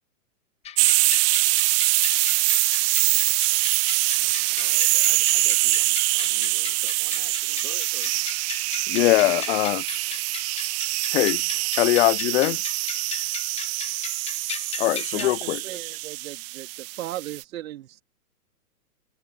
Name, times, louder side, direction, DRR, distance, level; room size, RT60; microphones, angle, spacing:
sound 1, 0.6-15.3, left 10 dB, 15° left, 0.7 m, -38 dB
sound 2, 0.8-17.4, right 22 dB, 30° right, 1.5 m, -24 dB
voice 1, 3.6-8.5, left 10 dB, 70° left, 6.4 m, -49 dB
voice 2, 8.9-9.8 11.1-11.4 11.8-12.6 14.8-15.6, left 18 dB, 45° left, 0.9 m, -21 dB
voice 3, 14.9-18.0, right 13 dB, 60° right, 3.2 m, -37 dB
hypercardioid pair, 120°, 47 cm